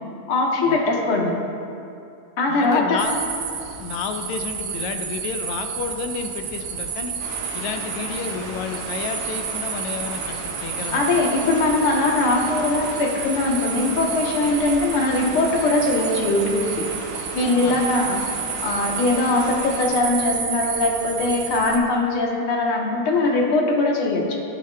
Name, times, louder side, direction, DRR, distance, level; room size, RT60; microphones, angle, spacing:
voice 1, 0.3-1.4 2.4-3.0 10.9-16.8 17.3-18.2 18.6-24.4, left 2 dB, 60° left, -1 dB, 1.7 m, -21 dB
voice 2, 2.5-3.2 3.8-7.1 7.5-11.3 17.6-17.9, left 6 dB, 80° left, 6 dB, 1.9 m, -31 dB
sound 1, 3.0-21.8, right 7 dB, 70° right, 1.4 m, -31 dB
sound 2, 7.2-19.8, right 2 dB, 55° right, 2.0 m, -35 dB
14.0 x 10.0 x 2.2 m, 2.6 s
omnidirectional pair, 3.3 m